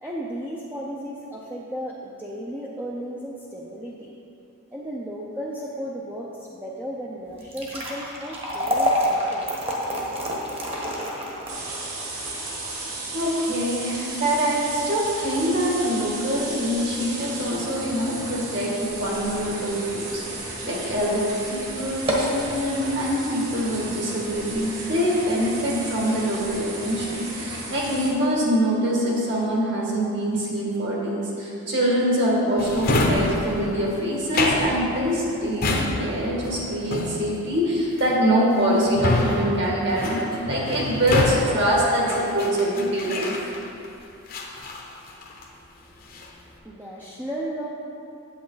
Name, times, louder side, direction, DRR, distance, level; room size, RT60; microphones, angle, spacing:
voice 1, 0.0-4.1 4.7-9.5 45.8-47.7, equal, 10° right, -4 dB, 0.6 m, -35 dB
sound 1, 7.3-19.6 20.0-20.1 20.8-21.0 21.3-21.4 21.9-22.4, equal, 25° right, 1.3 m, -29 dB
sound 2, 11.5-28.1, right 2 dB, 85° right, 2.1 m, -34 dB
voice 2, 13.1-43.3, equal, 55° right, -4 dB, 2.0 m, -24 dB
Drawer open or close, 32.6-43.9 44.3-45.6 45.9-46.4, left 2 dB, 45° left, 0.9 m, -27 dB
8.8 x 8.3 x 3.9 m, 2.7 s
head